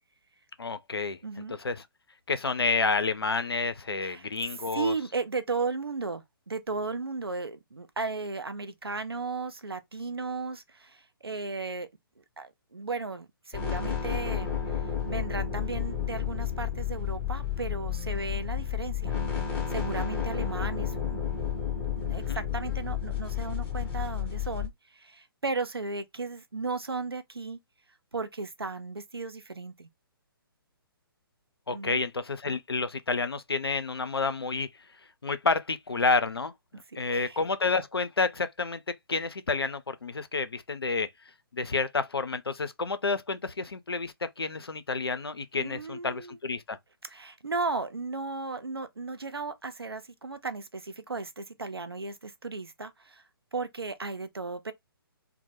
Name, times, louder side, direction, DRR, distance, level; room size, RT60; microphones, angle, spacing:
voice 1, 0.6-1.2 1.6-1.8 2.3-4.9 22.1-22.4 31.7-34.7 35.2-36.5 37.0-38.8 39.1-41.1 41.5-46.8, left 4 dB, 85° left, 0.4 m, -29 dB
voice 2, 1.2-1.6 4.0-4.3 4.7-11.9 12.4-14.6 15.1-19.2 19.7-21.2 21.8-27.6 28.1-29.9 31.7-32.0 36.7-37.4 45.6-46.4 47.0-53.2 53.5-54.7, right 3 dB, 85° right, 0.5 m, -35 dB
sound 1, 13.5-24.7, left 9 dB, 10° left, 0.6 m, -31 dB
2.1 x 2.1 x 2.8 m
figure-of-eight pair, 130°, 13 cm